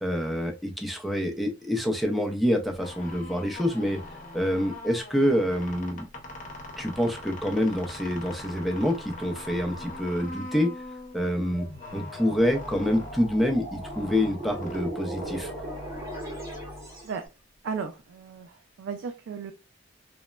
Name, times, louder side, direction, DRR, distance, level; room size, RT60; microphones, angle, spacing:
voice 1, 0.0-4.0 4.3-6.1 6.8-10.7 11.1-11.7 11.9-15.5, equal, ahead, 0.4 m, -26 dB
sound 1, 2.8-17.3, left 2 dB, 45° left, 0.7 m, -42 dB
sound 2, 11.4-17.2, right 1 dB, 15° right, 0.9 m, -38 dB
voice 2, 17.6-19.5, right 5 dB, 75° right, 0.3 m, -35 dB
3.1 x 2.0 x 2.2 m
head